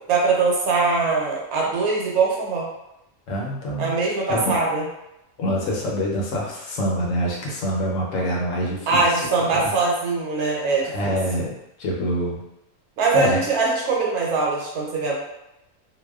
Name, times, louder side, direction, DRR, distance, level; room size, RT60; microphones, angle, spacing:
voice 1, 0.1-2.7 3.8-4.8 8.9-11.1 13.0-15.1, right 4 dB, 85° right, -3 dB, 1.2 m, -22 dB
voice 2, 3.3-3.9 4.3-4.6 5.4-9.7 10.8-11.5 11.8-12.4 13.1-13.4, equal, 70° left, -3 dB, 0.9 m, -25 dB
2.6 x 2.1 x 2.2 m, 0.88 s
omnidirectional pair, 1.5 m